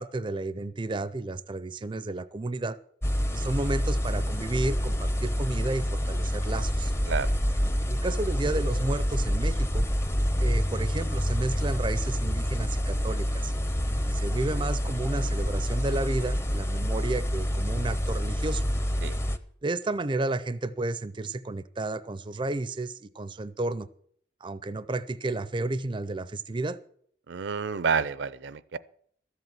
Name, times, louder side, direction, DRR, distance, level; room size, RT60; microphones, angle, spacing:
voice 1, 0.0-2.8 3.3-6.9 7.9-9.9 10.4-13.5 14.1-18.7 19.6-23.9 24.4-26.8, right 2 dB, 25° right, 15 dB, 0.4 m, -32 dB
sound 1, 3.0-19.4, equal, 15° left, 0.6 m, -27 dB
voice 2, 27.3-28.8, right 5 dB, 80° right, 18 dB, 0.5 m, -29 dB
13.0 x 8.1 x 7.4 m, 0.63 s
head